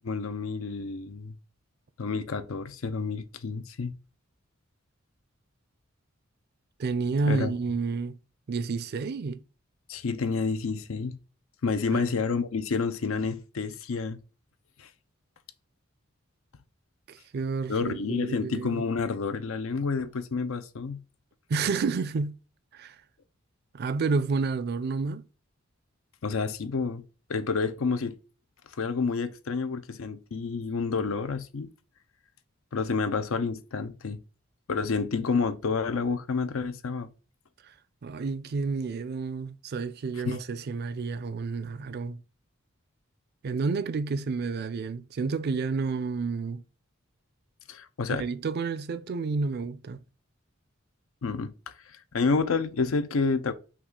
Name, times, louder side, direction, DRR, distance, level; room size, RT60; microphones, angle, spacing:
voice 1, 0.0-1.4 2.0-3.9 7.3-7.5 9.9-11.2 11.6-14.2 14.8-14.9 17.7-21.0 26.2-27.0 27.3-28.2 28.8-31.7 32.7-34.2 34.7-37.1 40.3-40.4 47.7-48.3 51.2-51.5 52.1-53.5, left 4 dB, 90° left, 0.6 m, -29 dB
voice 2, 6.8-8.2 8.5-9.4 11.9-12.0 17.1-18.8 21.5-22.3 22.7-23.0 23.7-25.2 38.0-42.2 43.4-46.6 48.1-50.0, right 4 dB, 50° right, 0.4 m, -30 dB
5.8 x 2.4 x 3.7 m
head